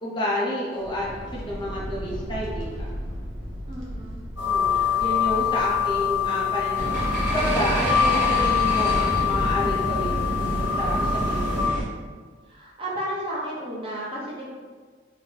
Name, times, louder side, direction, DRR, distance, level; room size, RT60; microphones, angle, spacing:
voice 1, 0.0-2.9 4.4-7.0 7.3-11.6, left 1 dB, 25° left, -4 dB, 0.5 m, -30 dB
sound 1, 0.7-8.3, equal, 80° right, 0.8 m, -37 dB
voice 2, 3.6-4.3 4.7-5.0 12.5-14.5, equal, 30° right, -6 dB, 0.8 m, -33 dB
sound 2, 4.4-11.7, left 8 dB, 75° left, 0.6 m, -25 dB
sound 3, 6.8-11.8, right 1 dB, 45° right, 1.1 m, -27 dB
3.7 x 2.1 x 3.1 m, 1.5 s
head